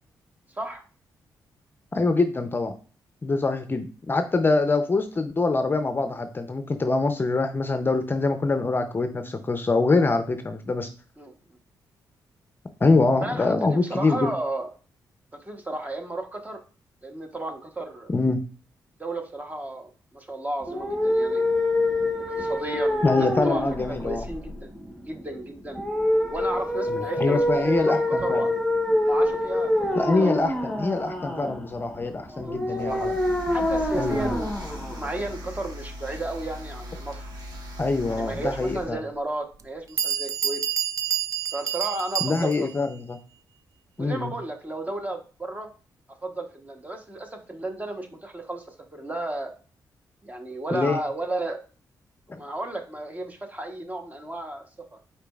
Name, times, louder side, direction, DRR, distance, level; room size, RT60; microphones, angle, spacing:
voice 1, 1.9-2.7 3.2-10.9 12.8-14.3 18.1-18.4 23.0-24.2 26.9-28.4 30.0-33.1 34.0-34.3 37.8-39.0 42.2-43.2 44.0-44.3 50.7-51.0 52.3-52.4, left 3 dB, 30° left, 8 dB, 0.5 m, -24 dB
voice 2, 13.2-14.7 15.4-16.6 17.0-18.1 19.0-21.4 22.4-24.7 25.0-25.8 26.3-28.5 29.1-30.3 32.3-33.1 33.5-34.5 34.9-37.2 38.1-40.6 41.5-42.7 44.0-45.7 46.2-49.5 50.2-51.6 52.3-54.6, right 2 dB, 20° right, 4 dB, 1.0 m, -33 dB
sound 1, 20.6-35.6, left 1 dB, ahead, 1.0 m, -26 dB
sound 2, 32.7-38.9, equal, 65° right, 1.4 m, -39 dB
Bell, 38.8-38.9 39.6-39.7 40.0-42.8, right 9 dB, 45° right, 0.4 m, -28 dB
5.0 x 4.4 x 2.3 m, 0.37 s
cardioid pair, 80°, 7 cm